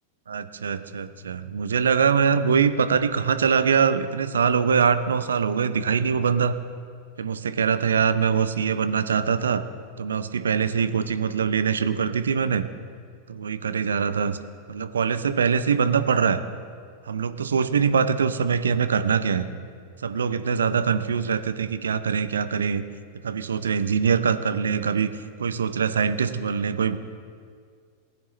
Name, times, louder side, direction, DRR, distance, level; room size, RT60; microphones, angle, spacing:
voice 1, 0.3-6.5 7.2-9.6 10.0-12.7 13.3-14.4 14.7-16.4 17.1-19.5 20.0-22.8 23.2-25.1 25.4-27.0, right 6 dB, 70° right, 12 dB, 0.6 m, -23 dB
19.5 x 9.4 x 3.2 m, 2.1 s
figure-of-eight pair, 90°, 0 cm